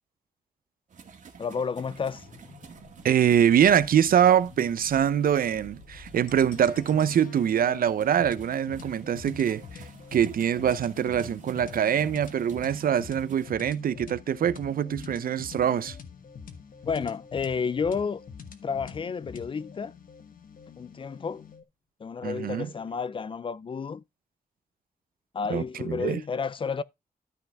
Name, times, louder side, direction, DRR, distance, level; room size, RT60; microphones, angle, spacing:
sound 1, 0.9-13.5, right 6 dB, 55° right, 2.0 m, -50 dB
voice 1, 1.4-2.3 16.9-18.2 18.6-19.9 20.8-21.5 22.0-24.0 25.3-26.8, left 5 dB, 35° left, 0.4 m, -31 dB
sound 2, 2.1-20.0 20.4-20.6, left 3 dB, 85° left, 4.3 m, -55 dB
voice 2, 3.0-16.0 22.2-22.7 25.5-26.2, right 9 dB, 75° right, 0.6 m, -24 dB
sound 3, 6.3-21.6, left 6 dB, 65° left, 1.4 m, -45 dB
13.0 x 5.6 x 3.5 m
wide cardioid pair, 160°, 15 cm